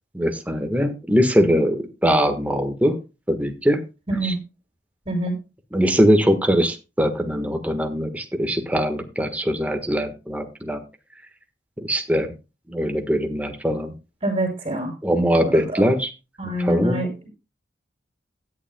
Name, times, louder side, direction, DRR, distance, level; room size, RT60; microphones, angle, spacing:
voice 1, 0.1-2.9 3.3-3.8 4.2-4.3 5.7-10.8 11.8-12.3 12.7-13.9 15.0-16.1 16.6-17.0, equal, 10° right, 5 dB, 1.4 m, -21 dB
voice 2, 4.1-4.4 5.1-5.4 14.2-14.9 15.3-15.8 16.4-17.3, right 1 dB, 30° right, 1 dB, 6.2 m, -25 dB
16.0 x 10.5 x 2.3 m, 0.29 s
head